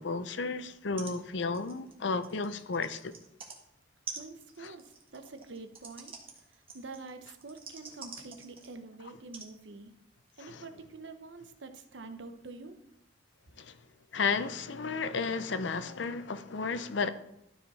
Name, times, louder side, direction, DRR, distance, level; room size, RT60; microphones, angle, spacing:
voice 1, 0.0-3.1 4.6-4.7 10.4-10.6 13.6-13.7 14.1-17.1, left 4 dB, 70° left, 0.6 m, -33 dB
sound 1, 0.7-0.8 1.0-1.2 1.4-3.6 4.1-8.8 9.3-9.5 10.3-10.4, right 5 dB, 30° right, 1.4 m, -46 dB
voice 2, 4.1-6.1 6.7-9.9 10.4-12.8, right 3 dB, 70° right, 0.9 m, -46 dB
12.5 x 5.0 x 4.1 m
head